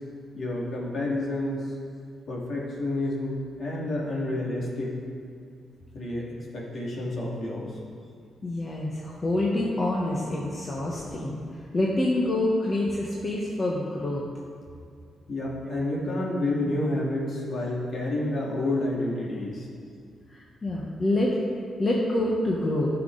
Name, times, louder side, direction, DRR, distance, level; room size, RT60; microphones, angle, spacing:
voice 1, 0.3-1.7 2.3-4.9 5.9-7.8 15.3-19.7, left 1 dB, 50° left, -4 dB, 2.4 m, -29 dB
voice 2, 8.4-11.4 11.7-14.2 20.3-21.4 21.8-22.9, left 1 dB, 30° left, -4 dB, 1.2 m, -26 dB
14.0 x 6.0 x 3.9 m, 2.3 s
cardioid pair, 115°, 0 cm